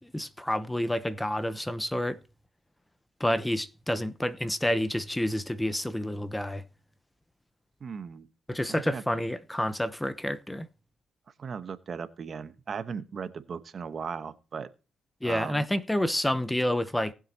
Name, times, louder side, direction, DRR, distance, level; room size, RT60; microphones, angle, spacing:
voice 1, 0.0-2.2 3.2-6.6 8.5-10.7 15.2-17.1, left 1 dB, 5° left, 0.8 m, -29 dB
voice 2, 7.8-8.3 8.7-9.0 11.4-14.7 15.2-15.7, right 6 dB, 45° right, 1.0 m, -37 dB
19.0 x 7.6 x 2.9 m
cardioid pair, 90°, 0 cm